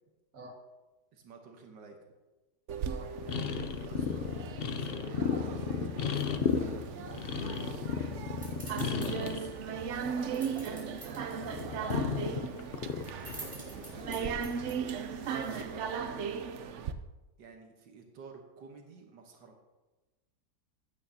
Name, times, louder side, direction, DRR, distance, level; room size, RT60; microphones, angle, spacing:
voice 1, 1.1-2.0 3.7-7.9 10.2-10.8 13.2-14.6 15.3-15.9 17.4-19.5, right 4 dB, 85° right, 2 dB, 1.8 m, -51 dB
sound 1, 2.7-16.9, right 7 dB, 70° right, 0.7 m, -38 dB
sound 2, 3.2-9.5 9.9-10.9 11.2-14.7 15.5-15.8, left 6 dB, 65° left, 0.5 m, -34 dB
sound 3, 6.1-15.8, right 1 dB, 25° right, 3.8 m, -51 dB
voice 2, 9.0-9.6 10.0-12.3, right 3 dB, 50° right, 0 dB, 2.1 m, -46 dB
15.5 x 8.9 x 2.8 m, 1.1 s
omnidirectional pair, 1.9 m